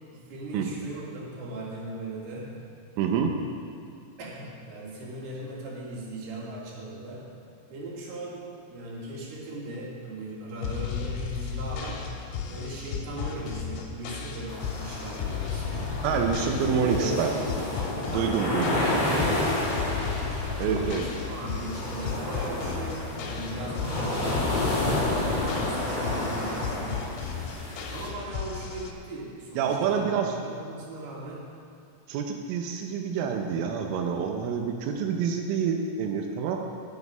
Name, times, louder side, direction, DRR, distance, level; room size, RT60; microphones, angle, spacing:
voice 1, 0.1-2.5 4.2-7.2 7.7-8.4 8.7-12.0 12.5-15.9 16.4-17.3 18.1-18.6 18.9-19.7 20.6-24.7 25.3-27.0 27.9-31.5, right 2 dB, 60° right, -5 dB, 4.2 m, -38 dB
voice 2, 3.0-3.3 16.0-17.3 18.1-18.8 20.6-21.0 29.6-30.3 32.1-36.6, right 6 dB, 90° right, 3 dB, 3.3 m, -27 dB
sound 1, 10.6-28.9, left 7 dB, 80° left, 3.5 m, -35 dB
sound 2, 14.5-28.1, left 1 dB, 30° left, 2.5 m, -30 dB
19.0 x 7.3 x 5.4 m, 2.3 s
omnidirectional pair, 5.5 m